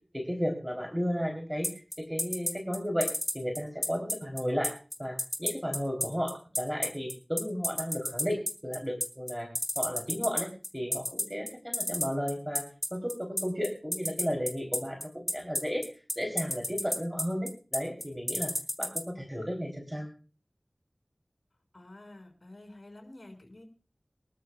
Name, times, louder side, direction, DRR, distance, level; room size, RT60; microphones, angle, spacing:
voice 1, 0.1-1.7 2.0-3.1 3.3-4.7 5.0-9.5 9.8-10.5 10.7-15.9 16.2-18.5 18.8-20.1, equal, 5° right, 2 dB, 3.4 m, -33 dB
sound 1, 1.6-19.0, left 1 dB, 20° left, 2.6 m, -30 dB
voice 2, 21.7-23.6, left 1 dB, 65° left, 3 dB, 5.9 m, -49 dB
24.0 x 12.5 x 2.4 m, 0.37 s
wide cardioid pair, 45°, 0 cm